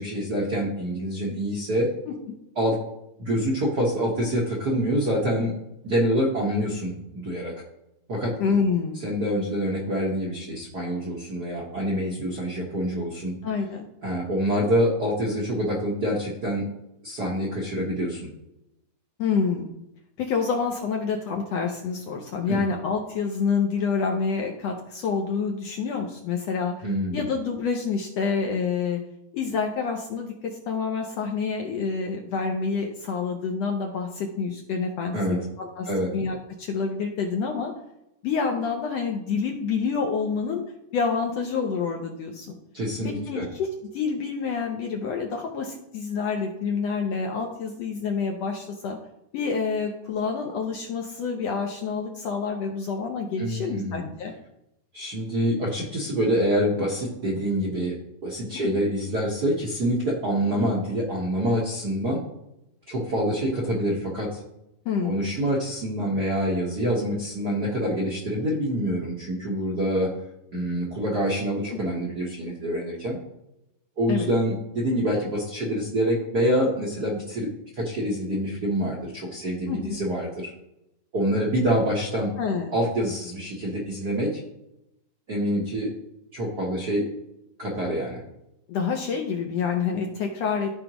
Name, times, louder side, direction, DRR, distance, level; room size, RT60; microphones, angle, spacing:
voice 1, 0.0-1.9 2.6-2.8 3.2-5.5 5.8-7.5 8.1-8.3 9.0-13.3 14.0-16.6 17.0-18.2 22.5-22.6 26.8-27.2 35.1-35.4 35.9-36.1 42.7-43.4 53.4-54.0 54.9-57.9 58.2-62.2 62.9-64.4 65.0-70.1 70.5-73.2 74.0-77.5 77.7-80.5 81.1-82.3 82.7-84.4 85.3-85.9 86.3-87.1 87.6-88.2, equal, 55° right, -4 dB, 1.1 m, -26 dB
voice 2, 8.4-9.0 13.4-13.9 19.2-19.8 20.2-26.9 27.1-29.0 29.3-37.7 38.2-40.6 40.9-42.6 43.0-43.7 43.9-49.0 49.3-54.3 58.5-58.9 64.8-65.2 74.1-74.3 79.7-80.0 82.4-82.7 88.7-90.7, left 5 dB, 70° left, 2 dB, 1.6 m, -27 dB
14.0 x 5.0 x 3.0 m, 0.85 s
omnidirectional pair, 3.6 m